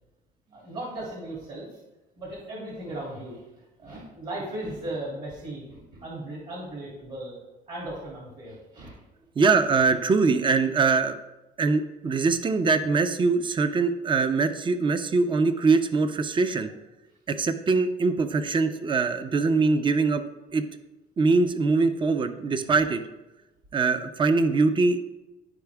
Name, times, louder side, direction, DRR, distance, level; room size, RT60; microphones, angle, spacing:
voice 1, 0.5-1.7 2.2-3.4 3.8-7.4 7.7-8.9, right 1 dB, 50° right, -4 dB, 2.9 m, -37 dB
voice 2, 9.4-11.2 11.6-16.7 17.3-20.2 20.5-20.6 21.2-23.0 23.7-25.0, right 4 dB, 30° right, 9 dB, 0.7 m, -23 dB
12.0 x 4.8 x 3.5 m, 1.0 s
cardioid pair, 110°, 17 cm